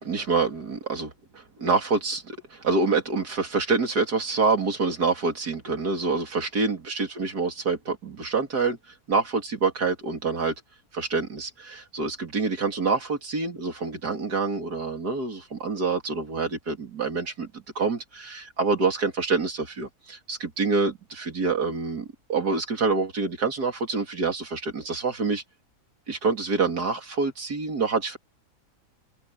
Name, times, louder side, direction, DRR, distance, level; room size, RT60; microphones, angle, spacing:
voice 1, 0.0-8.8 9.1-10.5 10.9-25.4 26.1-28.2, right 4 dB, 85° right, 3.6 m, -26 dB
omnidirectional pair, 1.7 m